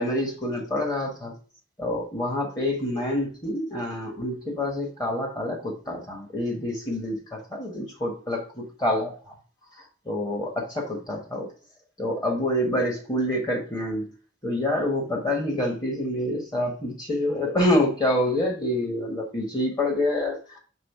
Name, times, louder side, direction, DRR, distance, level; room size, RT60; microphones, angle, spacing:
voice 1, 0.0-1.3 1.8-9.1 10.0-11.5 12.0-14.1 14.4-20.6, left 1 dB, 20° left, 0 dB, 1.2 m, -27 dB
5.4 x 3.8 x 5.3 m, 0.40 s
head